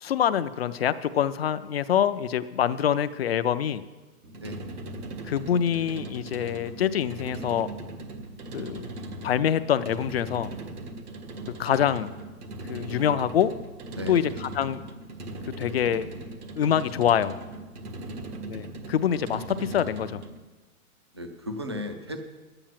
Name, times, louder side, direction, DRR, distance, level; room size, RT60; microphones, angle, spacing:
voice 1, 0.0-3.8 5.2-7.7 8.5-8.9 9.2-10.5 11.6-12.1 12.7-13.5 14.1-14.2 14.6-14.9 15.6-16.1 16.6-17.3 18.5-20.2, left 9 dB, 45° left, 13 dB, 0.5 m, -25 dB
sound 1, 4.2-20.4, right 2 dB, 90° right, 1.7 m, -39 dB
voice 2, 4.3-4.6 8.2-8.8 13.9-14.2 21.1-22.2, left 1 dB, 20° right, 5 dB, 0.4 m, -38 dB
11.0 x 9.0 x 7.3 m, 1.3 s
hypercardioid pair, 165°, 44 cm